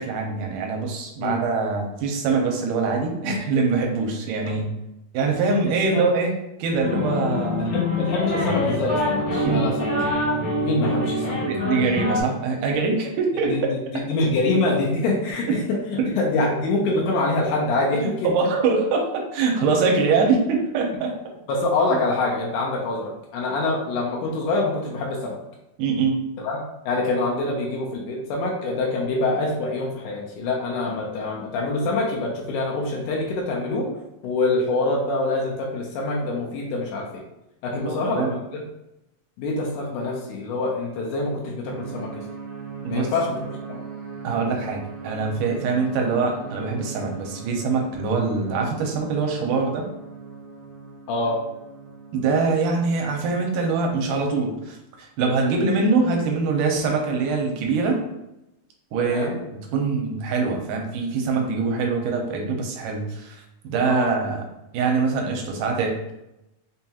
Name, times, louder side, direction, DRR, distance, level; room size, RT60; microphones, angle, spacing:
voice 1, 0.0-4.7 5.1-6.3 6.6-7.8 9.4-9.7 11.5-13.5 16.0-16.1 18.0-21.2 25.8-26.3 37.8-38.3 42.8-43.1 44.2-49.8 52.1-58.0 58.9-64.4 64.7-66.0, right 4 dB, 85° right, 1 dB, 2.2 m, -23 dB
sound 1, 6.8-12.2, left 2 dB, 50° left, 0.8 m, -25 dB
voice 2, 7.3-10.0 10.6-11.4 13.5-15.6 15.9-18.3 21.5-25.4 26.4-26.6 26.9-33.9 34.2-37.2 37.6-38.6 39.4-42.2 42.9-43.4 43.7-43.8 51.1-51.4 55.5-55.7 59.0-59.4 63.8-64.1, left 2 dB, 75° left, -1 dB, 2.1 m, -25 dB
sound 2, 41.6-53.9, right 5 dB, 70° right, 1.6 m, -39 dB
5.3 x 2.3 x 2.8 m, 0.90 s
omnidirectional pair, 3.7 m